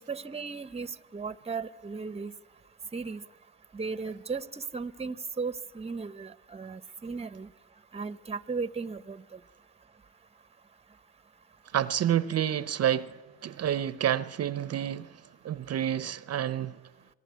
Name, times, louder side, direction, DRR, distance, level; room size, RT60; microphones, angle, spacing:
voice 1, 0.0-2.3 2.9-3.2 3.7-7.5 7.9-9.4, right 4 dB, 20° right, 0.9 m, -36 dB
voice 2, 11.7-15.2 15.4-16.8, right 10 dB, 55° right, 0.8 m, -29 dB
27.0 x 20.0 x 9.4 m
cardioid pair, 90°, 30 cm